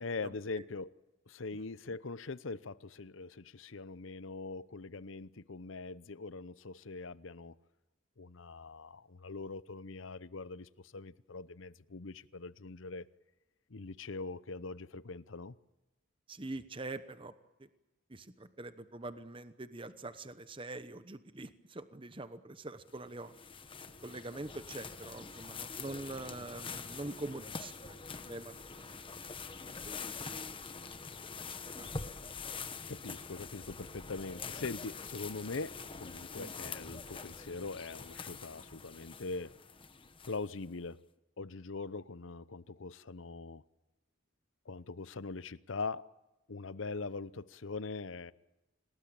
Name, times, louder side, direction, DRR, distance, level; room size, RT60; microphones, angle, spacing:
voice 1, 0.0-0.9 1.3-7.5 8.2-13.1 13.7-15.5 32.9-39.6 40.3-41.0 41.4-43.6 44.7-46.1 46.5-48.3, left 3 dB, 75° left, 0.8 m, -42 dB
voice 2, 16.3-17.3 17.6-17.7 18.1-23.3 24.0-28.0 28.3-29.0 29.8-30.6 31.5-31.9 36.4-36.5, right 2 dB, 25° right, 0.9 m, -44 dB
sound 1, 22.9-40.7, left 5 dB, 25° left, 1.2 m, -45 dB
27.0 x 19.0 x 8.7 m
head